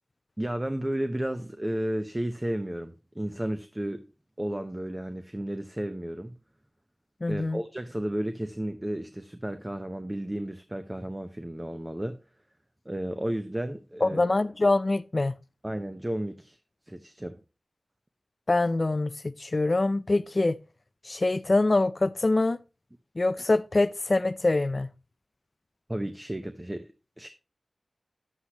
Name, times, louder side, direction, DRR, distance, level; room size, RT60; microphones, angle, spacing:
voice 1, 0.4-4.0 4.4-6.3 7.3-12.2 12.8-14.2 15.6-16.6 16.9-17.4 25.9-26.9 27.2-27.3, right 1 dB, 20° right, 0.8 m, -33 dB
voice 2, 7.2-7.6 14.0-15.3 18.5-20.6 21.0-22.6 23.2-24.9, left 2 dB, 45° left, 0.4 m, -24 dB
9.8 x 8.0 x 2.9 m
wide cardioid pair, 55°, 0 cm